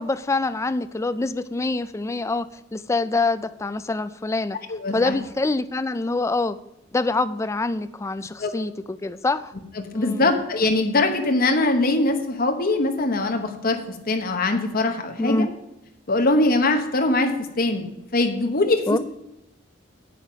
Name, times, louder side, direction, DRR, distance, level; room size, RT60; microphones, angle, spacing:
voice 1, 0.0-2.5 2.7-4.6 4.9-6.6 6.9-9.5 9.9-10.3 15.2-15.5 18.9-19.0, left 3 dB, 15° left, 12 dB, 0.3 m, -25 dB
voice 2, 4.7-5.1 8.4-8.5 9.8-13.8 14.1-15.5 16.1-19.0, left 2 dB, 50° left, 5 dB, 1.1 m, -22 dB
10.0 x 7.3 x 5.1 m, 0.85 s
head